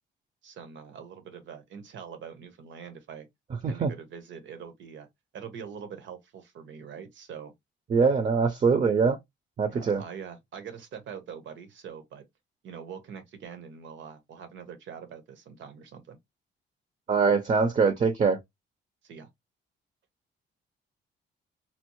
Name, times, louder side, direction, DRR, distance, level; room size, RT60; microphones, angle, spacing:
voice 1, 0.4-3.3 3.7-5.1 5.3-7.5 9.6-12.3 12.6-16.2 19.0-19.3, right 7 dB, 70° right, 1.0 m, -43 dB
voice 2, 7.9-9.2 9.6-10.0 17.1-18.4, right 5 dB, 35° right, 0.6 m, -23 dB
4.3 x 2.0 x 3.0 m
cardioid pair, 90°, 20 cm